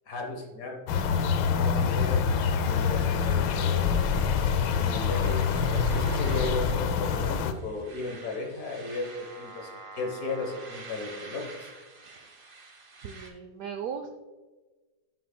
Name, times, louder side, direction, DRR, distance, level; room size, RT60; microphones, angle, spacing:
voice 1, 0.1-2.2 2.7-4.0 4.7-11.7, left 3 dB, 50° left, 2 dB, 1.4 m, -36 dB
sound 1, 0.9-7.5, left 6 dB, 80° left, 1.3 m, -25 dB
sound 2, 1.8-13.3, right 3 dB, 35° right, 1.0 m, -48 dB
voice 2, 12.1-12.5 13.0-14.1, right 7 dB, 85° right, 7 dB, 0.7 m, -38 dB
11.0 x 6.1 x 2.2 m, 1.2 s
omnidirectional pair, 2.1 m